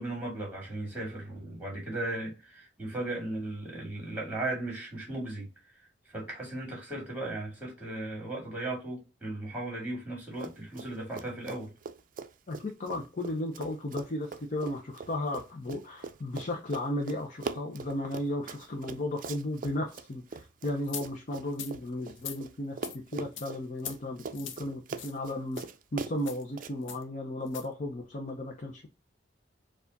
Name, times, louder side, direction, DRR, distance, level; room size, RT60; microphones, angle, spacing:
voice 1, 0.0-5.5 6.1-11.7, right 2 dB, 10° right, 2.1 m, -36 dB
Run, 10.3-10.9 11.1-22.5 22.8-26.7, right 4 dB, 45° right, 0.4 m, -41 dB
voice 2, 12.5-22.8 23.1-25.6 25.9-28.9, left 1 dB, 45° left, 0.7 m, -35 dB
sound 1, 20.9-21.1 21.5-21.7 22.2-22.4 22.8-23.0 23.4-23.5 23.8-24.0 24.3-24.6 25.0-25.2 25.5-25.7 26.2-26.4 26.9-27.0 27.5-27.7, left 8 dB, 85° left, 0.7 m, -41 dB
4.6 x 2.4 x 3.9 m
head